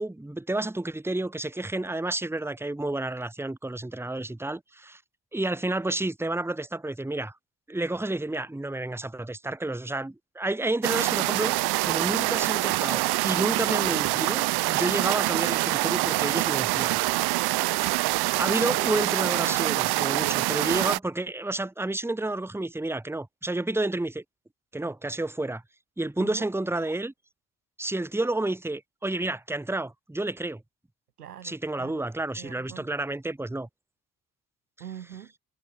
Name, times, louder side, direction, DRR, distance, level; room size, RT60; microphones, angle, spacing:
voice 1, 0.0-5.0 5.3-7.3 7.7-11.6 11.8-17.0 18.4-24.2 24.7-25.6 26.0-27.1 27.8-30.6 31.4-33.7, right 2 dB, 5° right, 1.4 m, -30 dB
sound 1, 10.8-21.0, right 21 dB, 60° right, 0.9 m, -25 dB
voice 2, 31.2-32.0 32.4-32.9 34.8-35.3, right 10 dB, 85° right, 1.8 m, -44 dB
figure-of-eight pair, 40°, 45 cm